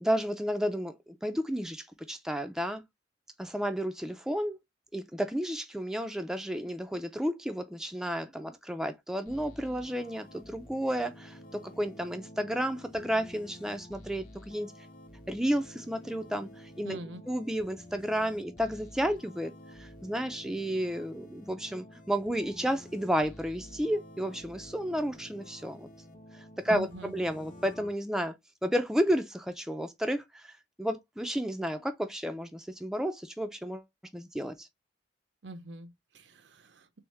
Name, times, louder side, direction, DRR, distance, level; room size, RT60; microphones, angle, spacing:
voice 1, 0.0-2.8 3.4-4.6 4.9-14.7 15.3-17.0 17.3-25.9 26.4-28.3 28.6-30.5 30.8-33.8 34.1-34.7, equal, 5° right, 0.4 m, -32 dB
sound 1, 9.3-27.9, left 1 dB, 50° left, 0.8 m, -50 dB
voice 2, 16.8-17.3 26.7-27.1 35.4-37.0, right 3 dB, 75° right, 0.6 m, -45 dB
3.5 x 3.4 x 3.1 m
head